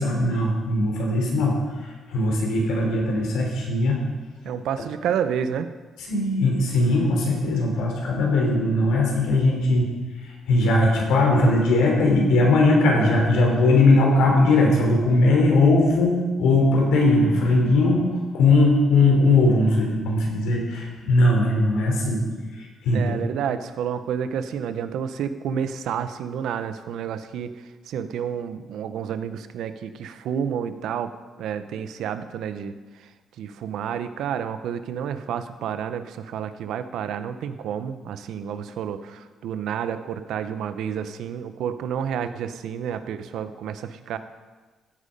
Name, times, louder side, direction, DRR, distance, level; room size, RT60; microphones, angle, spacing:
voice 1, 0.0-4.1 6.1-9.9 10.2-18.1 18.3-22.2 22.5-23.1, left 2 dB, 90° left, 0 dB, 3.5 m, -19 dB
voice 2, 4.4-5.7 22.9-27.5 27.9-31.1 31.4-32.7 33.0-33.1 33.4-44.2, right 8 dB, 80° right, 11 dB, 0.8 m, -30 dB
15.0 x 8.5 x 5.3 m, 1.3 s
cardioid pair, 90°, 0 cm